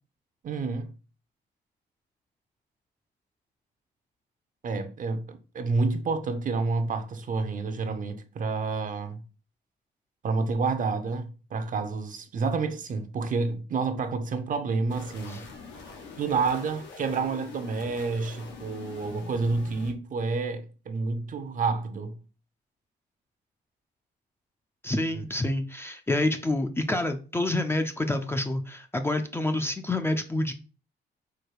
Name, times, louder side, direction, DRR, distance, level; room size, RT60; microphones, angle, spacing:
voice 1, 0.4-0.9 4.6-9.2 10.2-15.5 16.2-22.1, right 4 dB, 45° right, 0.6 m, -29 dB
sound 1, 14.9-19.9, left 4 dB, 85° left, 1.0 m, -45 dB
voice 2, 24.8-30.5, left 1 dB, 15° left, 0.4 m, -28 dB
4.6 x 2.2 x 4.7 m
cardioid pair, 110°, 19 cm